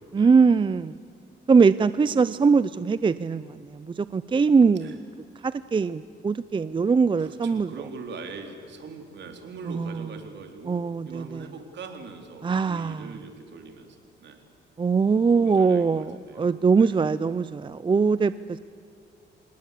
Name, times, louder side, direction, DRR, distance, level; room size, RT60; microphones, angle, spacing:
voice 1, 0.1-1.0 1.5-5.0 5.4-7.7 9.7-10.0 10.7-11.4 12.4-13.1 14.8-18.6, right 5 dB, 25° right, 16 dB, 0.5 m, -22 dB
voice 2, 7.2-10.8 11.1-14.4 15.3-17.1, right 4 dB, 65° right, 5 dB, 3.8 m, -42 dB
26.5 x 20.0 x 8.4 m, 2.5 s
cardioid pair, 90°, 20 cm